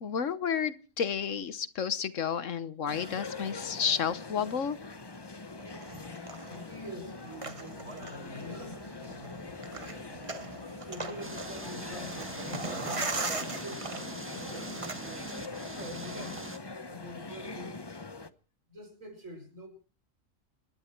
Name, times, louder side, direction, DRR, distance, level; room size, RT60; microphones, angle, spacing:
voice 1, 0.0-4.8, left 7 dB, 70° left, 14 dB, 1.4 m, -31 dB
sound 1, 2.9-18.3, left 3 dB, 25° left, 0.8 m, -43 dB
sound 2, 5.6-16.5, right 3 dB, 25° right, 1.0 m, -41 dB
voice 2, 6.4-9.4 10.6-16.5 16.9-17.8 18.7-19.7, left 1 dB, 75° right, 5 dB, 6.0 m, -45 dB
sound 3, 11.2-16.6, right 1 dB, 10° right, 1.4 m, -43 dB
27.5 x 11.5 x 4.5 m, 0.39 s
omnidirectional pair, 1.4 m